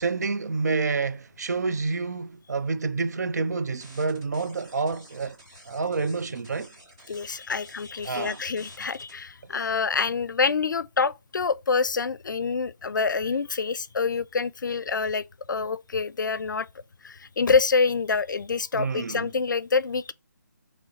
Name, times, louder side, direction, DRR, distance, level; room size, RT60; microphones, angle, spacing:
voice 1, 0.0-5.4 5.7-6.7 8.0-8.4 9.5-9.7 18.7-19.3, right 4 dB, 60° right, 0.4 m, -28 dB
sound 1, 3.8-9.1, right 1 dB, 15° right, 0.8 m, -51 dB
voice 2, 7.1-16.7 17.0-20.1, left 5 dB, 90° left, 0.4 m, -26 dB
4.0 x 3.0 x 3.7 m
hypercardioid pair, 175°, 10 cm